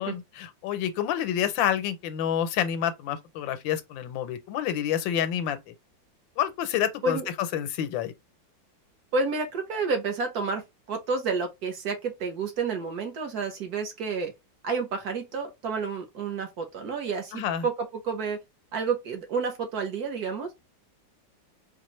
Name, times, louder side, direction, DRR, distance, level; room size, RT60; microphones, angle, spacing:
voice 1, 0.0-5.7 6.4-7.2 7.5-8.1 17.3-17.6, left 10 dB, 85° left, 1.3 m, -28 dB
voice 2, 9.1-10.6 10.9-14.3 14.6-17.7 18.0-18.4 18.7-20.5, right 4 dB, 60° right, 1.3 m, -30 dB
4.3 x 2.4 x 3.0 m
omnidirectional pair, 2.0 m